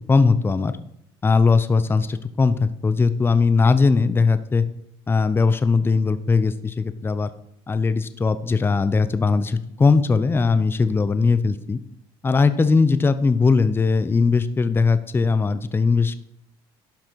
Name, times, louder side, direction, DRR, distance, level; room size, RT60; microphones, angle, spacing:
voice 1, 0.1-0.8 1.2-4.6 5.1-7.3 7.7-11.8 12.2-16.2, left 4 dB, 20° left, 13 dB, 0.6 m, -19 dB
11.5 x 6.0 x 4.6 m, 0.76 s
supercardioid pair, 95°, 11 cm